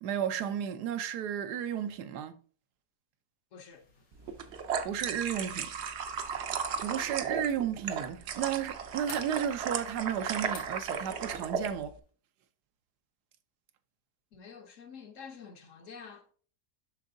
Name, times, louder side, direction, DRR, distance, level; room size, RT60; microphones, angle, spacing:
voice 1, 0.0-2.4 4.8-5.7 6.8-11.9, right 9 dB, 85° right, 1.2 m, -33 dB
voice 2, 3.5-3.8 14.3-16.3, left 6 dB, 60° left, 1.0 m, -48 dB
sound 1, 3.7-12.1, left 4 dB, 85° left, 2.2 m, -57 dB
sound 2, 4.3-11.7, right 6 dB, 60° right, 0.7 m, -35 dB
7.5 x 6.0 x 2.6 m
omnidirectional pair, 1.7 m